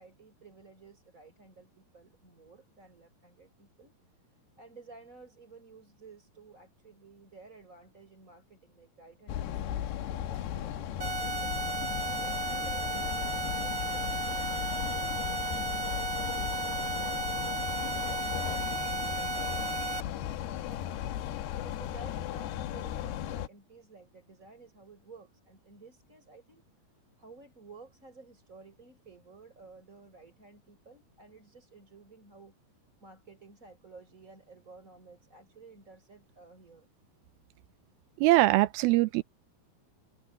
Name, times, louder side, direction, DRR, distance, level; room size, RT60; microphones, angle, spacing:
voice 1, 0.0-3.9 4.2-11.5 11.8-17.9 18.3-26.6 27.2-32.6 33.0-36.9, right 4 dB, 20° right, 6.3 m, -54 dB
sound 1, 9.3-23.5, left 11 dB, 90° left, 3.1 m, -36 dB
sound 2, 11.0-20.0, right 3 dB, 40° right, 1.3 m, -34 dB
voice 2, 38.2-39.2, right 18 dB, 80° right, 2.4 m, -22 dB
omnidirectional pair, 4.5 m